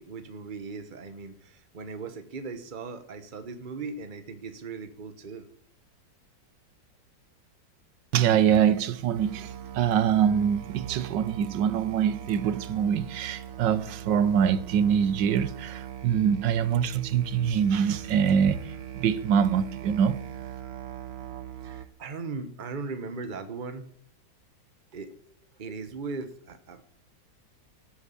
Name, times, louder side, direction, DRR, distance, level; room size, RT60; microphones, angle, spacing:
voice 1, 0.0-5.5 21.6-23.9 24.9-27.0, right 4 dB, 30° right, 1.1 m, -38 dB
voice 2, 8.1-18.6 18.9-20.2, right 8 dB, 85° right, 1.5 m, -24 dB
Musical instrument, 9.1-21.9, right 10 dB, 55° right, 0.7 m, -41 dB
12.5 x 8.2 x 8.5 m
omnidirectional pair, 1.9 m